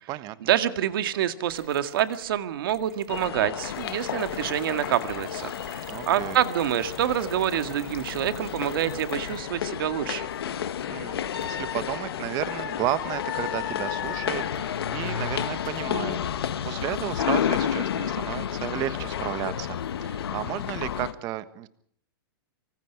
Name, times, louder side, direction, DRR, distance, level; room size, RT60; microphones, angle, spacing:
voice 1, 0.4-10.3, right 11 dB, 65° right, 9 dB, 2.0 m, -27 dB
Mechanisms, 1.5-2.3 2.7-9.5, right 2 dB, ahead, 6.7 m, -51 dB
sound 1, 3.1-21.1, left 9 dB, 85° left, 1.7 m, -31 dB
sound 2, 3.6-21.1, left 10 dB, 65° left, 3.4 m, -40 dB
voice 2, 5.9-6.4 10.9-21.7, right 15 dB, 30° right, 14 dB, 1.3 m, -33 dB
24.5 x 24.5 x 4.7 m, 0.62 s
hypercardioid pair, 155°, 13 cm